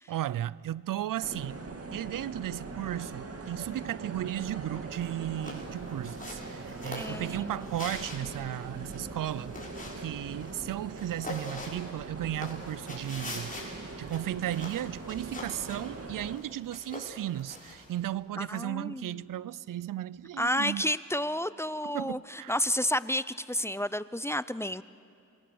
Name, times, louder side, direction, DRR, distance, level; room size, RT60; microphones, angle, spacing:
voice 1, 0.1-1.6 1.9-9.5 10.0-13.5 14.0-20.8 21.8-22.5, right 12 dB, 80° right, 0.5 m, -35 dB
sound 1, 1.2-16.4, right 3 dB, 45° right, 2.1 m, -42 dB
sound 2, 5.3-18.1, left 2 dB, 25° left, 6.7 m, -44 dB
voice 2, 6.9-7.5 18.4-19.2 20.4-24.8, left 1 dB, 10° left, 0.5 m, -31 dB
27.0 x 22.0 x 7.0 m
cardioid pair, 65°, 32 cm